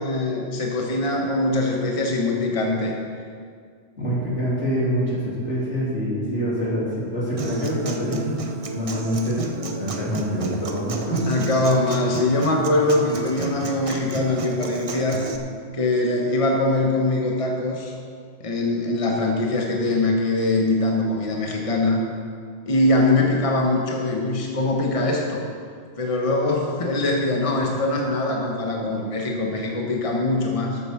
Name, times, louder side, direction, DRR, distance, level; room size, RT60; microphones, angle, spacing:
voice 1, 0.0-2.9 11.3-15.2 15.7-17.9 18.4-22.0 22.7-25.5 26.0-30.8, left 2 dB, 30° left, -1 dB, 1.3 m, -22 dB
voice 2, 4.0-8.4 8.7-9.4 9.7-11.3, equal, 75° left, -6 dB, 3.5 m, -25 dB
Human voice / Acoustic guitar, 7.4-15.4, right 3 dB, 35° right, 0.7 m, -31 dB
13.0 x 8.2 x 5.9 m, 2.1 s
omnidirectional pair, 1.2 m